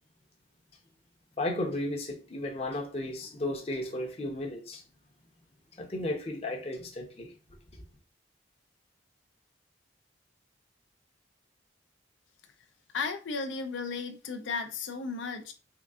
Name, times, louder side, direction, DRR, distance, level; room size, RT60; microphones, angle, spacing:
voice 1, 1.4-4.8 5.8-7.3, left 1 dB, 30° left, 1 dB, 0.6 m, -34 dB
voice 2, 12.9-15.5, left 4 dB, 80° left, 6 dB, 0.4 m, -34 dB
3.6 x 3.4 x 2.3 m, 0.35 s
head